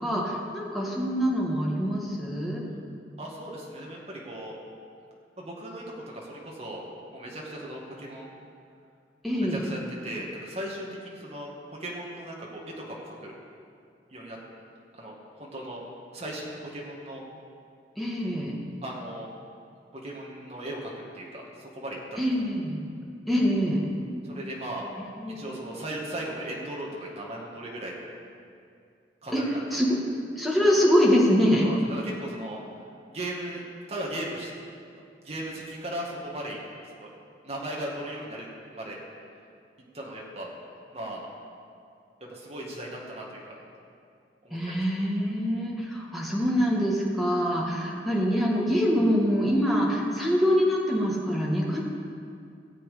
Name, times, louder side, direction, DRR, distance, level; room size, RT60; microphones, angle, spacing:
voice 1, 0.0-2.6 9.2-9.6 18.0-18.5 22.2-22.8 23.3-23.9 25.2-25.6 29.3-29.4 29.7-30.0 30.4-31.6 44.5-51.8, equal, ahead, -4 dB, 1.9 m, -24 dB
voice 2, 3.2-4.6 5.4-5.8 6.1-6.9 7.1-8.3 9.4-13.3 14.1-14.4 14.9-15.8 16.1-17.2 18.8-19.3 19.9-22.2 24.2-24.9 25.3-27.9 29.2-29.8 31.6-32.6 33.1-33.6 33.9-34.5 35.2-36.6 36.9-37.1 37.4-39.0 39.9-40.5 40.9-41.3 42.3-43.6 44.4-44.6, right 1 dB, 35° right, -3 dB, 2.1 m, -37 dB
17.5 x 7.8 x 5.1 m, 2.4 s
head